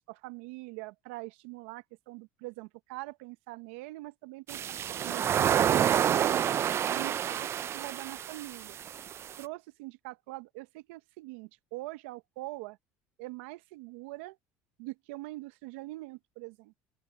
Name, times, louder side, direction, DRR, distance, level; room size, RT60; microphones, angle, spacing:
voice 1, 0.1-4.8 5.0-6.4 6.9-7.5 7.7-8.8 9.4-12.8 13.2-14.4 14.8-16.7, right 21 dB, 80° right, 0.9 m, -43 dB
sound 1, 4.5-9.4, right 10 dB, 40° right, 0.5 m, -28 dB
open air
supercardioid pair, 90°, 7 cm